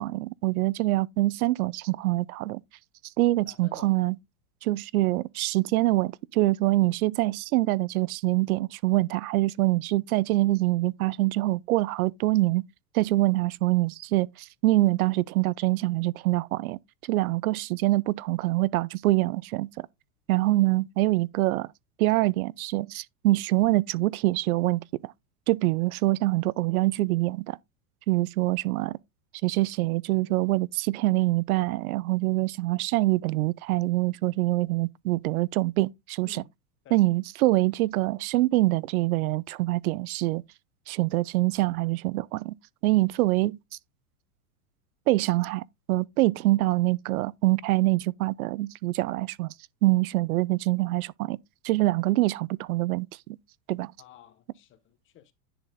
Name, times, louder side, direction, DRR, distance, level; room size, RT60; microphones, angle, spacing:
voice 1, 0.0-2.6 3.2-4.2 4.6-12.6 12.9-16.8 17.1-19.9 20.3-21.7 22.0-25.1 25.5-27.6 28.1-29.0 29.4-36.4 36.9-40.4 40.9-42.5 42.8-43.6 45.1-49.5 49.8-51.4 51.6-53.4 53.7-53.9, right 18 dB, 80° right, 0.6 m, -25 dB
voice 2, 3.2-3.9 36.2-36.5 36.8-37.0 54.0-55.3, left 11 dB, 25° left, 1.2 m, -51 dB
10.5 x 4.3 x 3.8 m
supercardioid pair, 150°, 43 cm